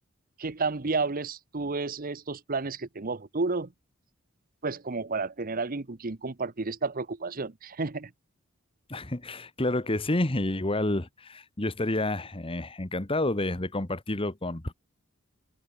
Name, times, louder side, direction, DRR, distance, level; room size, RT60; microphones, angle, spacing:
voice 1, 0.4-3.7 4.6-8.1, right 3 dB, 45° right, 1.0 m, -31 dB
voice 2, 8.9-14.7, left 2 dB, 25° left, 1.4 m, -29 dB
open air
head